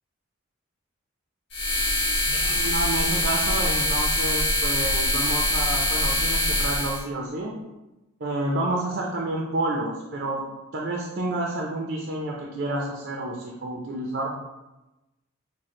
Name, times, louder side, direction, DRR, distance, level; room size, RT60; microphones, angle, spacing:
sound 1, 1.5-7.0, left 1 dB, 55° left, 1.1 m, -24 dB
voice 1, 2.2-7.5 8.2-10.5 10.7-14.3, right 2 dB, 50° right, -1 dB, 0.5 m, -29 dB
6.1 x 2.1 x 3.7 m, 1.0 s
head